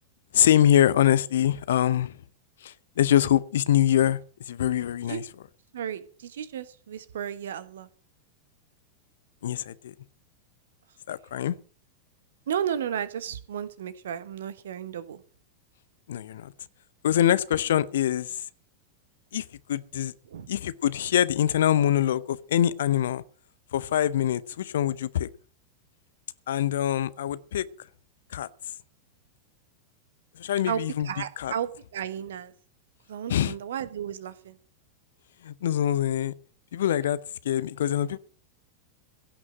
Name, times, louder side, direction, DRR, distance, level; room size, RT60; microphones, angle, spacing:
voice 1, 0.3-2.2 2.6-4.2 4.5-5.2 9.4-9.9 11.1-11.6 16.1-16.5 17.0-18.4 19.3-20.1 20.5-23.2 23.7-25.3 26.5-27.7 28.3-28.5 30.4-31.1 31.4-31.5 33.3-33.5 35.4-36.3 36.7-37.2 37.4-38.2, left 11 dB, 60° left, 0.7 m, -24 dB
voice 2, 5.7-7.9 12.5-15.2 20.2-20.5 30.7-32.5 33.1-34.6, right 9 dB, 60° right, 1.2 m, -33 dB
16.5 x 6.2 x 8.7 m
figure-of-eight pair, 90°, 0 cm